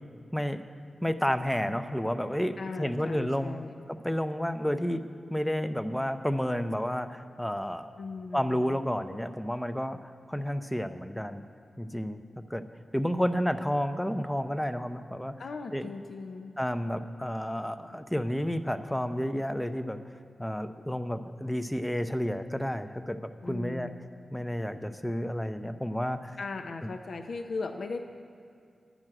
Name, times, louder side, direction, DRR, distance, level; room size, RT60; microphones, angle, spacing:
voice 1, 1.0-3.6 3.9-5.0 5.3-7.9 8.3-10.0 10.3-11.4 11.8-12.6 12.9-15.3 15.7-15.9 16.6-20.0 20.4-23.9 24.3-26.4, equal, 5° left, 10 dB, 0.5 m, -31 dB
voice 2, 2.6-3.8 8.0-8.8 15.4-16.5 23.4-24.0 26.4-28.0, left 3 dB, 75° left, 6 dB, 0.5 m, -38 dB
10.5 x 6.1 x 8.9 m, 2.4 s
wide cardioid pair, 130°, 0 cm